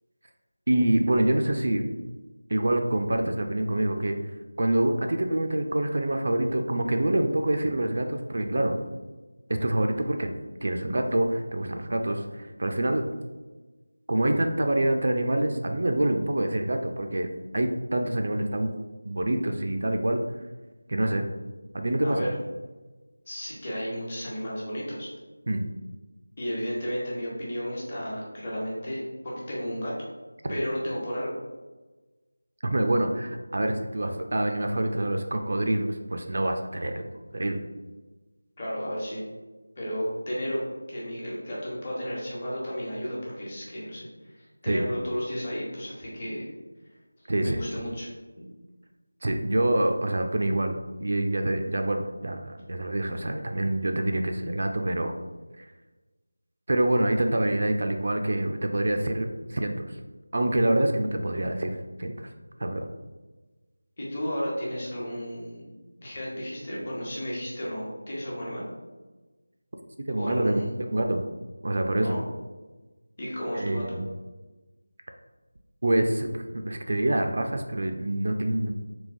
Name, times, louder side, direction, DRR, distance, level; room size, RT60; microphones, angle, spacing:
voice 1, 0.7-1.8 2.5-4.2 4.6-8.7 9.5-10.3 10.6-13.0 14.1-18.7 19.0-20.2 20.9-21.3 21.7-22.2 25.5-25.6 30.4-30.6 32.6-37.1 37.3-37.6 44.6-44.9 47.3-47.6 49.2-55.1 55.6-55.7 56.7-60.0 60.3-62.3 62.6-62.9 70.1-70.6 70.9-71.2 71.6-72.2 73.5-74.0 75.8-78.7, right 1 dB, 55° right, 4 dB, 0.3 m, -26 dB
voice 2, 23.3-25.1 26.4-29.9 30.5-31.4 38.6-39.2 39.8-40.6 40.9-46.5 47.4-48.1 48.4-48.5 64.0-65.7 66.0-68.6 70.1-70.7 72.0-72.2 73.2-73.8, equal, 30° left, -5 dB, 1.0 m, -33 dB
3.8 x 2.8 x 2.6 m, 1.2 s
figure-of-eight pair, 170°, 0 cm